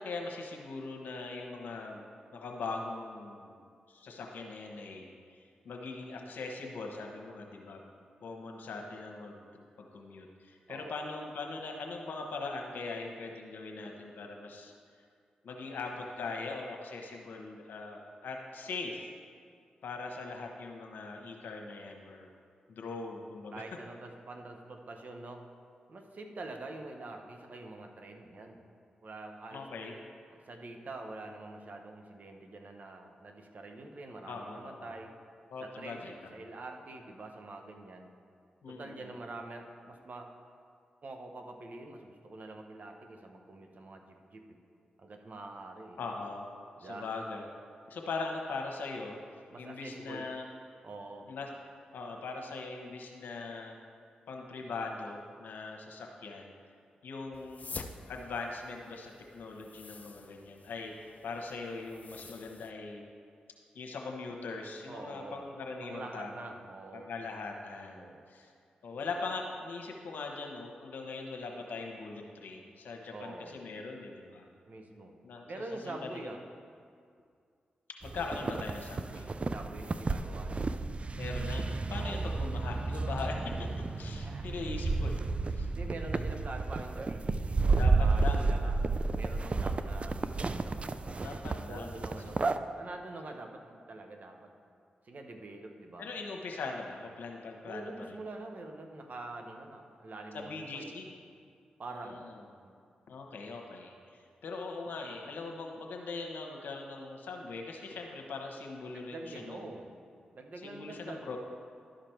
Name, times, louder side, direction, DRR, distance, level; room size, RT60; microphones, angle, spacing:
voice 1, 0.0-2.0 2.3-3.6 3.9-7.9 8.2-14.7 15.4-19.1 19.8-22.3 22.7-23.6 29.5-29.9 34.3-34.9 35.5-36.3 38.6-39.0 46.0-46.5 46.8-47.5 47.9-49.2 49.6-50.5 51.3-51.5 51.9-53.8 54.3-56.5 57.0-57.6 58.1-63.0 63.7-66.5 66.9-68.5 68.8-74.5 75.2-76.3 78.0-79.4 81.1-83.7 84.0-85.2 85.5-85.7 87.6-88.8 91.2-92.0 96.0-98.2 100.3-101.1 101.9-102.3 103.1-109.7 110.6-111.4, left 3 dB, 80° left, 1 dB, 1.1 m, -41 dB
voice 2, 23.5-25.4 25.9-28.7 29.0-29.7 30.3-35.2 35.6-38.1 38.7-40.3 41.0-44.6 45.0-46.0 46.8-47.1 49.5-50.3 50.8-51.3 64.9-65.5 65.8-67.1 67.9-68.3 73.1-73.6 74.7-75.1 75.5-76.4 79.5-80.9 81.9-82.4 84.2-84.5 85.7-88.8 89.1-91.1 91.7-92.4 92.7-94.5 95.0-96.1 97.7-100.9 101.8-102.2 102.6-102.7 108.9-109.9 110.3-111.3, right 2 dB, 60° right, 4 dB, 1.0 m, -45 dB
sound 1, 57.3-62.7, left 4 dB, 55° left, 0.6 m, -48 dB
sound 2, 78.0-92.6, right 3 dB, 40° right, 0.4 m, -32 dB
12.0 x 5.1 x 4.5 m, 2.3 s
supercardioid pair, 40°, 3 cm